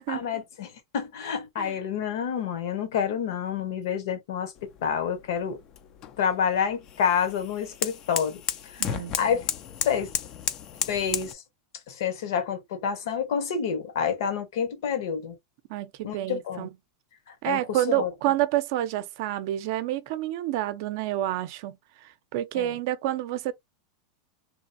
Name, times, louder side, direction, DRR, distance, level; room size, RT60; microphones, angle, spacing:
voice 1, 0.1-4.5 4.8-5.6 6.2-8.8 9.2-9.4 9.8-10.1 10.9-11.4 11.9-15.4 16.0-16.7 17.3-18.1 22.5-22.8, left 7 dB, 70° left, 1.0 m, -28 dB
sound 1, 4.6-11.3, left 9 dB, 30° left, 0.4 m, -34 dB
voice 2, 8.8-9.1 15.7-16.7 17.4-21.8 22.0-23.5, right 14 dB, 50° right, 0.5 m, -28 dB
3.0 x 2.5 x 2.5 m
supercardioid pair, 160°, 2 cm